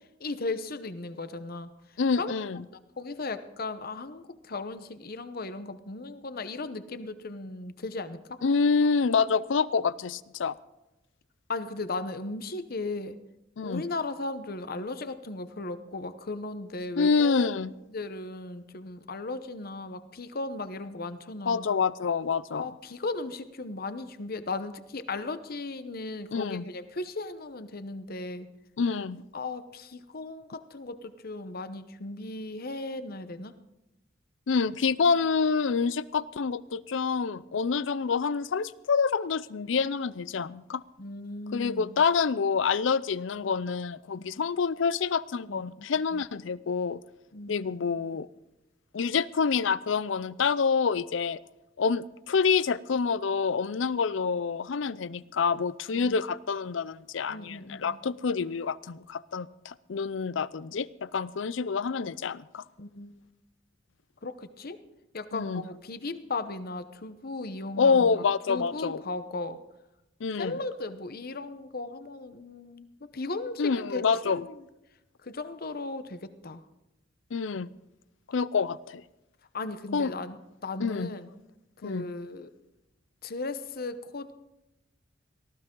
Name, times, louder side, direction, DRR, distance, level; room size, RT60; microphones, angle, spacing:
voice 1, 0.2-1.7 2.2-2.3 3.0-8.4 11.5-13.2 13.6-17.5 17.9-21.7 22.5-28.5 29.3-33.5 41.0-42.0 44.2-44.4 45.5-46.2 47.3-47.6 55.9-56.2 57.3-58.0 62.8-63.2 64.2-64.8 65.1-69.6 70.4-74.6 75.2-76.6 79.5-80.4 80.6-81.3 81.8-82.5 83.2-84.3, left 3 dB, 50° left, 12 dB, 0.9 m, -36 dB
voice 2, 2.0-2.6 8.4-10.5 13.6-13.8 17.0-17.7 21.5-22.7 26.3-26.6 28.8-29.2 34.5-40.8 41.5-47.0 47.5-48.3 48.9-51.4 51.8-62.6 65.3-65.6 67.8-69.0 70.2-70.5 73.6-74.4 77.3-77.7 78.3-79.0 79.9-80.1 80.8-81.1 81.8-82.1, left 5 dB, 70° left, 19 dB, 0.5 m, -27 dB
18.5 x 14.5 x 3.8 m, 0.94 s
head